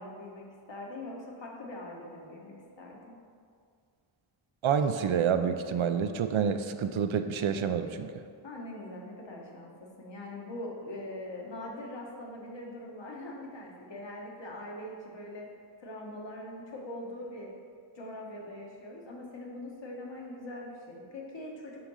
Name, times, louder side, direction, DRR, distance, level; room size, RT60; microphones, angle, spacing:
voice 1, 0.0-3.2 8.4-9.7 10.0-15.5 15.8-17.5 17.9-21.9, left 1 dB, 60° left, -2 dB, 1.4 m, -42 dB
voice 2, 4.6-8.1, right 7 dB, 70° right, 8 dB, 0.6 m, -28 dB
6.8 x 3.7 x 6.3 m, 2.2 s
wide cardioid pair, 125°, 49 cm